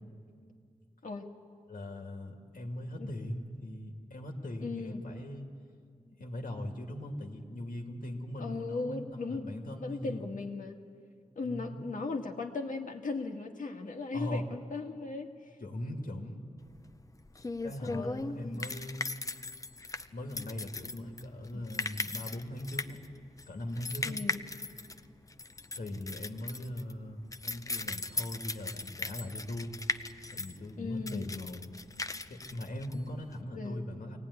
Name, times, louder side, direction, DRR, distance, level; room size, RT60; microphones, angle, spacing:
voice 1, 1.7-5.5 6.2-10.3 11.4-11.8 14.1-14.4 15.6-16.4 17.6-19.1 20.1-23.0 23.5-24.2 25.7-29.8 30.3-31.6 32.3-34.2, left 1 dB, 85° left, 3 dB, 2.3 m, -40 dB
voice 2, 4.6-5.0 8.4-9.5 9.7-10.8 11.4-15.3 17.8-18.6 21.5-21.6 24.0-24.4 30.8-31.3 33.5-33.8, left 3 dB, 70° left, 2 dB, 1.8 m, -37 dB
sound 1, 16.7-33.4, left 3 dB, 25° left, 0.6 m, -39 dB
23.5 x 17.5 x 9.8 m, 2.2 s
wide cardioid pair, 130°, 14 cm